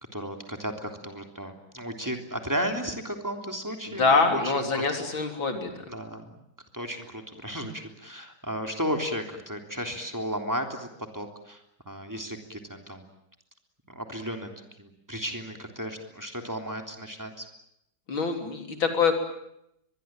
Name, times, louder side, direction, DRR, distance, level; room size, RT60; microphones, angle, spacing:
voice 1, 0.1-5.1 5.9-6.2 6.7-13.0 13.9-14.5 14.8-17.5, equal, 10° right, 4 dB, 3.3 m, -34 dB
voice 2, 4.0-5.7 18.1-19.1, left 4 dB, 90° left, 5 dB, 4.3 m, -24 dB
23.5 x 22.5 x 9.1 m, 0.78 s
omnidirectional pair, 2.1 m